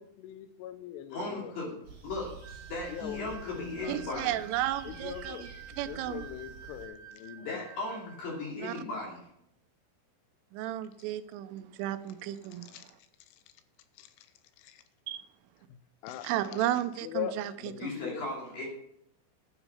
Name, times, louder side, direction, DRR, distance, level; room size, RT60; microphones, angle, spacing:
voice 1, 0.2-1.5 2.9-4.3 4.8-7.6 12.7-12.8 14.0-14.3 14.6-14.8 16.0-18.3, left 11 dB, 85° left, 3.2 m, -41 dB
voice 2, 1.1-1.8 2.0-2.3 2.7-4.4 7.4-9.3 17.8-18.7, left 2 dB, 50° left, 4.0 m, -37 dB
sound 1, 1.8-6.9, right 4 dB, 40° right, 4.3 m, -49 dB
sound 2, 2.4-8.5, right 8 dB, 70° right, 3.9 m, -51 dB
voice 3, 3.9-5.4 5.8-6.2 8.6-8.7 10.5-12.7 15.1-15.2 16.2-17.9, right 13 dB, 85° right, 3.2 m, -33 dB
12.0 x 7.0 x 5.5 m
omnidirectional pair, 5.6 m